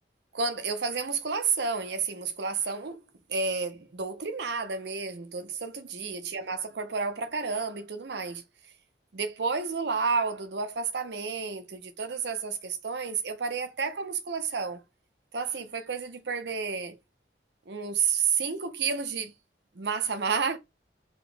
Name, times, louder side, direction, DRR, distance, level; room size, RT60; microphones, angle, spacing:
voice 1, 0.3-3.0 3.3-8.4 9.1-14.8 15.3-17.0 17.7-19.3 19.7-20.6, right 5 dB, 75° right, 0.7 m, -31 dB
4.1 x 2.9 x 3.4 m
head